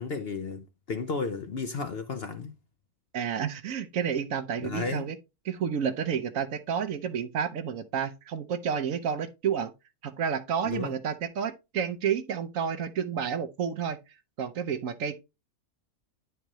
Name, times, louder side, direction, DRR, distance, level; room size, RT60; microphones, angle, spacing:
voice 1, 0.0-2.5 4.6-5.1 10.7-10.9, left 4 dB, 55° left, 0.7 m, -33 dB
voice 2, 3.1-5.2 5.4-9.7 10.0-14.0 14.4-15.2, right 7 dB, 65° right, 1.1 m, -30 dB
10.0 x 4.6 x 3.0 m
omnidirectional pair, 1.6 m